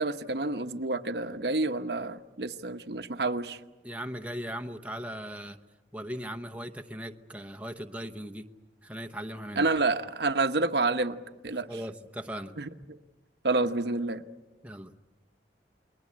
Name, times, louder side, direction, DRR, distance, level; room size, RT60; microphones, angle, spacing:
voice 1, 0.0-3.6 9.6-11.2 11.4-11.7 12.6-12.7 13.4-14.2, right 3 dB, 65° right, 8 dB, 1.0 m, -28 dB
voice 2, 3.8-5.6 5.9-8.5 8.8-9.7 11.5-12.5 14.6-14.9, equal, 10° right, 5 dB, 0.9 m, -38 dB
29.5 x 21.5 x 8.6 m, 1.2 s
head